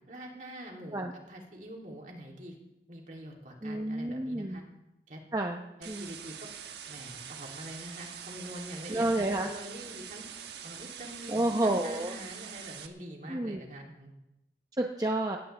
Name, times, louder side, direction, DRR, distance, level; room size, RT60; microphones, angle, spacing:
voice 1, 0.1-2.5 2.9-4.6 5.1-5.2 5.8-6.5 6.9-10.3 10.6-14.1, right 1 dB, 45° right, 0 dB, 2.9 m, -45 dB
voice 2, 3.6-4.6 5.3-6.1 8.9-9.5 11.3-12.1 13.3-13.6 14.8-15.4, right 1 dB, 20° right, 2 dB, 0.8 m, -30 dB
sound 1, 5.8-12.9, right 8 dB, 75° right, 1.2 m, -44 dB
17.5 x 17.5 x 3.4 m, 0.93 s
head